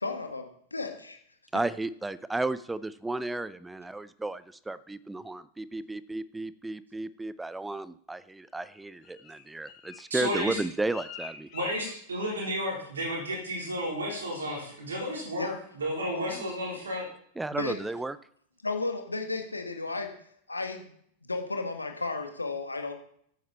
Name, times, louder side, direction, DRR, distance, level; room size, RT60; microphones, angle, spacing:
voice 1, 0.0-1.2 15.4-15.5 17.5-17.8 18.6-20.1 20.5-20.9 21.3-22.9, left 3 dB, 80° left, 5 dB, 1.8 m, -33 dB
voice 2, 1.5-11.5 16.3-16.5 17.4-18.2, right 2 dB, 5° right, 17 dB, 0.6 m, -33 dB
Bird, 8.6-12.7 13.0-13.3 13.6-14.0 14.3-14.7 15.1-15.2, left 7 dB, 40° left, 4.2 m, -47 dB
voice 3, 10.1-10.6 11.5-17.1, equal, 70° right, 0 dB, 4.0 m, -32 dB
14.0 x 9.1 x 4.3 m, 0.64 s
figure-of-eight pair, 90°, 0 cm